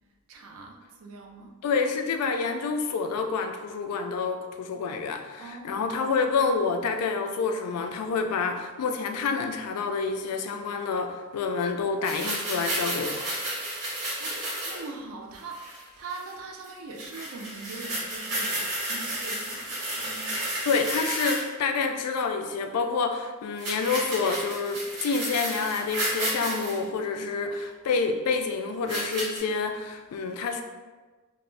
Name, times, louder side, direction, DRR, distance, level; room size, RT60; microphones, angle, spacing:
voice 1, 0.3-1.5 5.4-5.8 14.2-20.5, right 3 dB, 70° right, 2 dB, 0.4 m, -42 dB
voice 2, 1.6-13.3 20.7-30.6, left 4 dB, 90° left, 5 dB, 0.3 m, -28 dB
sound 1, 12.0-14.9 15.4-15.8 16.1-16.3 16.6-16.7 17.0-21.5 23.6-26.8 27.6-27.7 28.9-29.4, right 1 dB, 90° right, 1.0 m, -32 dB
2.5 x 2.0 x 3.1 m, 1.3 s
head